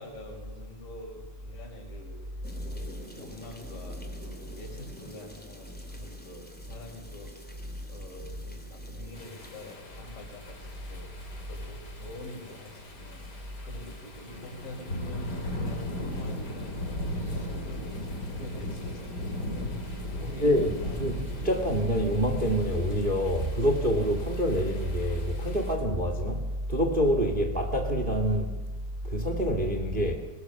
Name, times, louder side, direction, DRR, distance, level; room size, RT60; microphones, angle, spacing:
voice 1, 0.0-2.2 2.7-19.7 20.1-21.1, left 1 dB, 70° left, 6.8 m, -46 dB
sound 1, 2.4-9.7, equal, 5° left, 1.7 m, -49 dB
sound 2, 9.1-25.8, left 1 dB, 30° left, 3.5 m, -38 dB
voice 2, 20.2-20.7 21.0-28.5 29.0-30.2, equal, 25° right, 1.2 m, -26 dB
21.5 x 21.0 x 7.0 m
omnidirectional pair, 4.2 m